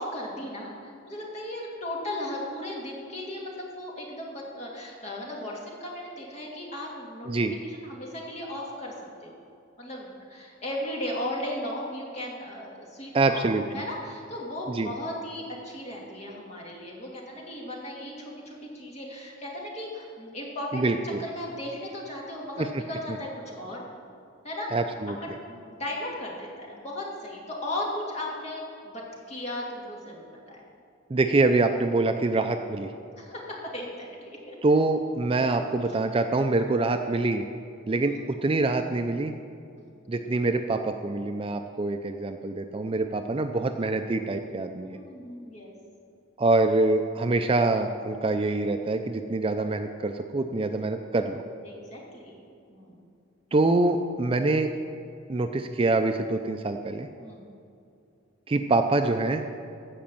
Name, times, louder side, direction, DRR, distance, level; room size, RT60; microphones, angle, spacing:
voice 1, 0.0-7.3 7.6-8.9 9.2-9.3 9.8-13.4 13.7-20.8 21.2-23.8 24.4-24.7 25.5-30.6 33.2-34.6 38.1-38.2 39.8-39.9 44.8-45.7 51.6-52.4 52.7-53.0 57.2-57.5, left 1 dB, 35° left, -3 dB, 2.4 m, -36 dB
voice 2, 13.1-13.6 14.7-14.9 20.7-21.2 22.6-22.7 24.7-25.4 31.1-32.9 34.6-37.4 37.9-39.3 40.1-45.0 46.4-51.4 53.5-54.7 55.3-57.1 58.5-59.4, right 2 dB, 25° right, 6 dB, 0.4 m, -25 dB
15.5 x 5.2 x 7.5 m, 2.5 s
head